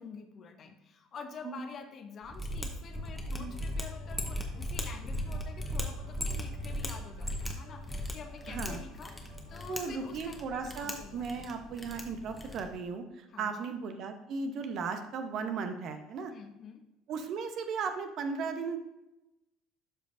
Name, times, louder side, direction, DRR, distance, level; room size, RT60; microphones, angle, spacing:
voice 1, 0.0-11.5 13.3-13.7 16.3-16.8, left 5 dB, 40° left, 5 dB, 1.0 m, -48 dB
Mechanisms, 2.3-12.8, equal, 10° left, 1.2 m, -38 dB
sound 1, 2.9-12.7 13.4-13.5, left 3 dB, 90° left, 1.6 m, -53 dB
voice 2, 8.5-8.8 9.7-16.3 17.1-18.8, right 5 dB, 45° right, 7 dB, 0.8 m, -36 dB
12.0 x 5.1 x 2.6 m, 0.93 s
figure-of-eight pair, 60°, 0 cm